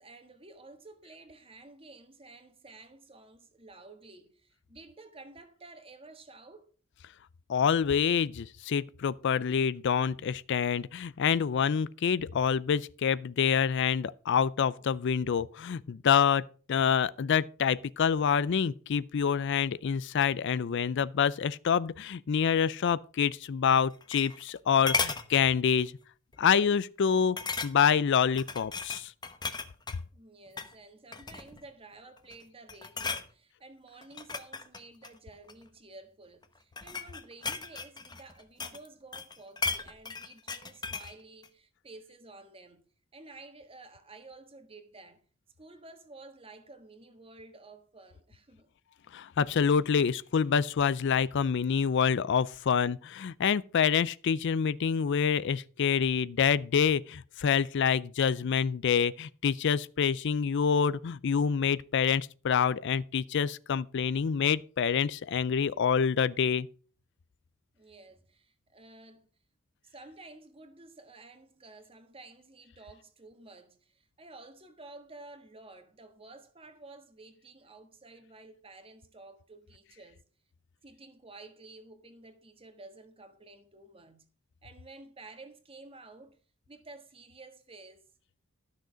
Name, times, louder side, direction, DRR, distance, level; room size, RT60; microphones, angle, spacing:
voice 1, 0.0-6.7 30.1-42.8 43.1-45.2 45.6-48.7 67.7-69.3 69.8-80.2 80.8-84.2 84.6-86.4 86.7-88.0, right 2 dB, 25° right, 1.5 m, -52 dB
voice 2, 7.5-16.4 16.7-25.9 26.4-27.4 27.6-29.1 49.1-66.7, left 7 dB, 55° left, 0.4 m, -27 dB
sound 1, 23.7-24.6 24.9-25.3 25.8-26.0 26.3-26.4 27.4-28.0 28.4-30.0 30.5-30.7 31.1-31.6 32.2-32.4 32.7-33.3 34.0-35.6 36.4-38.9 39.1-41.1 41.4-41.5, left 4 dB, 20° left, 0.8 m, -35 dB
12.5 x 6.5 x 5.0 m
head